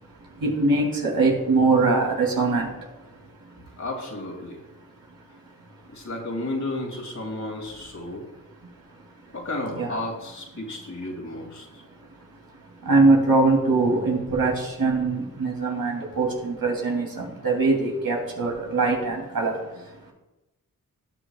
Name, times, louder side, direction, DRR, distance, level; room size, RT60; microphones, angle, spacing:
voice 1, 0.2-3.6 8.6-9.0 9.7-9.9 11.8-12.2 12.5-20.1, right 3 dB, 70° right, -1 dB, 3.0 m, -23 dB
voice 2, 3.8-4.6 5.9-8.3 9.3-11.8, left 2 dB, 50° left, 0 dB, 2.8 m, -33 dB
18.5 x 7.0 x 2.4 m, 1.0 s
cardioid pair, 60°, 36 cm